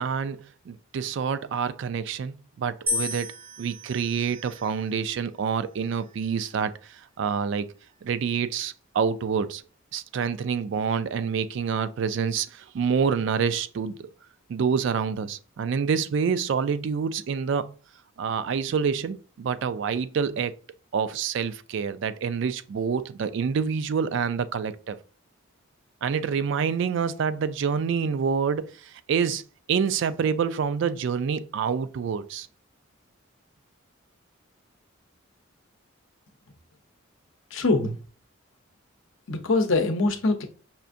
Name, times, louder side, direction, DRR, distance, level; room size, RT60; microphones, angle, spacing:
voice 1, 0.0-3.3 3.6-7.7 8.0-9.6 9.9-14.1 14.5-17.7 18.2-20.5 20.9-25.0 26.0-29.4 29.7-32.5, right 6 dB, 60° right, 0.3 m, -27 dB
sound 1, 2.9-5.1 5.9-6.4, left 3 dB, 25° right, 0.6 m, -34 dB
voice 2, 37.5-38.0 39.3-40.5, left 3 dB, 65° left, 0.6 m, -23 dB
5.5 x 2.5 x 2.5 m
head